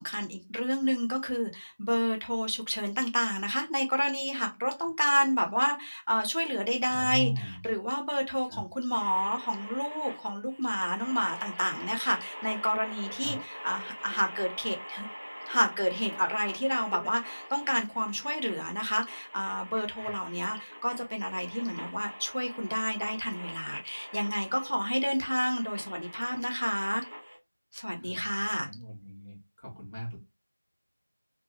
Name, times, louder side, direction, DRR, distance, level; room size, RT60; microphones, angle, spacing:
voice 1, 0.0-15.1 15.5-27.0 27.7-28.7, equal, 75° left, 0.9 m, -30 dB
voice 2, 6.9-7.6 8.5-8.6 13.2-13.4 20.0-20.1 28.0-30.2, equal, 20° left, 0.9 m, -37 dB
sound 1, 8.9-27.4, equal, 20° right, 0.9 m, -44 dB
2.7 x 2.3 x 2.7 m
figure-of-eight pair, 180°, 0 cm